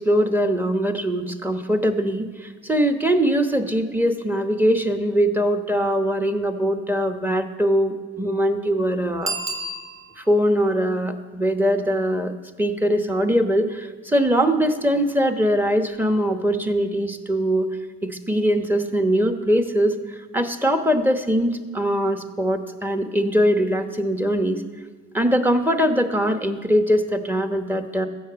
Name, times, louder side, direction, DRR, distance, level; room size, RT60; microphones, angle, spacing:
voice 1, 0.0-9.3 10.2-12.3 12.6-17.7 18.0-20.0 20.3-24.6 25.1-28.1, equal, 5° right, 7 dB, 1.1 m, -21 dB
Bicycle bell, 9.2-10.4 15.8-15.9, right 2 dB, 45° right, 1.7 m, -30 dB
13.0 x 8.5 x 7.0 m, 1.4 s
cardioid pair, 90°, 30 cm